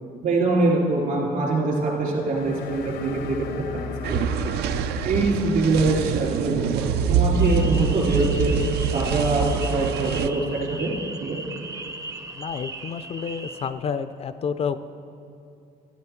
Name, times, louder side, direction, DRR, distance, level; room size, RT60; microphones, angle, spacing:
voice 1, 0.2-3.2 3.6-4.5 5.0-8.5 8.9-10.9 11.2-11.4, right 2 dB, 60° right, -2 dB, 3.0 m, -24 dB
sound 1, 2.2-6.0, left 7 dB, 75° left, 0.7 m, -37 dB
sound 2, 4.0-10.3, right 7 dB, 75° right, 0.5 m, -25 dB
sound 3, 7.4-13.7, right 2 dB, 20° right, 0.5 m, -37 dB
voice 2, 12.4-14.9, left 6 dB, 35° left, 12 dB, 0.4 m, -29 dB
13.5 x 9.3 x 4.4 m, 2.6 s
cardioid pair, 110°, 17 cm